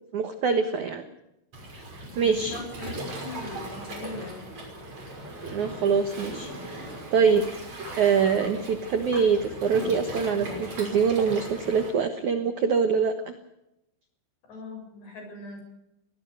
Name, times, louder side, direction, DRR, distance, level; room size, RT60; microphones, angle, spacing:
voice 1, 0.1-1.1 2.2-2.6 5.4-7.5 8.0-13.3, right 6 dB, 80° right, 8 dB, 1.7 m, -24 dB
Waves surf, 1.5-11.9, right 1 dB, 35° right, 7.0 m, -38 dB
voice 2, 2.1-4.4 14.5-15.6, left 2 dB, 60° left, 3 dB, 9.3 m, -40 dB
23.5 x 19.0 x 6.6 m, 0.86 s
omnidirectional pair, 5.7 m